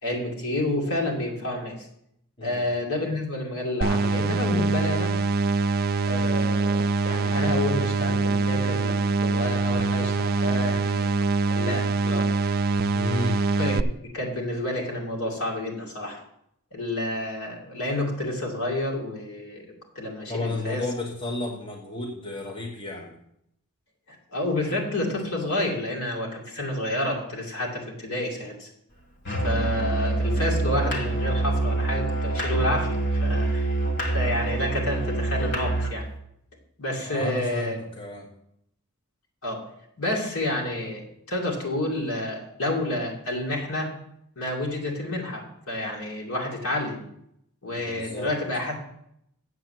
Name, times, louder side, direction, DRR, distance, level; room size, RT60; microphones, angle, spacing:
voice 1, 0.0-1.9 2.4-5.1 6.0-11.1 11.5-12.3 13.5-16.2 16.7-19.6 19.9-20.9 24.1-28.7 29.4-33.0 33.2-33.7 34.1-36.1 36.8-37.8 39.4-39.6 40.0-41.0 41.3-43.9 44.4-45.4 45.7-47.0 47.6-48.7, left 1 dB, 70° left, -1 dB, 2.6 m, -29 dB
sound 1, 3.8-13.8, right 3 dB, 40° right, 0.3 m, -24 dB
voice 2, 12.9-13.4 20.3-23.2 37.0-38.3 47.7-48.3, left 2 dB, 25° left, -1 dB, 1.3 m, -32 dB
Musical instrument, 29.3-36.0, right 2 dB, 50° left, 1.6 m, -26 dB
7.9 x 6.9 x 7.8 m, 0.75 s
head